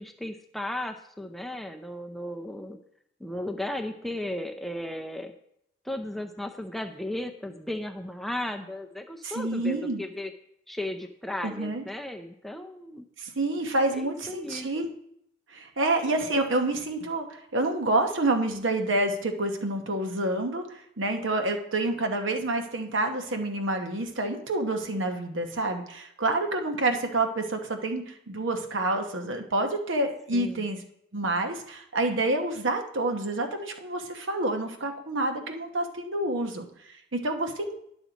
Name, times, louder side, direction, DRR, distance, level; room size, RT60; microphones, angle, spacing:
voice 1, 0.0-2.8 3.2-5.3 5.8-10.3 10.7-13.0 13.9-14.7 30.3-30.6, left 1 dB, ahead, 4 dB, 0.5 m, -35 dB
voice 2, 9.2-10.0 11.4-11.8 13.2-14.9 15.5-30.8 31.1-37.8, right 2 dB, 65° right, 4 dB, 1.0 m, -28 dB
10.5 x 6.2 x 4.0 m, 0.73 s
head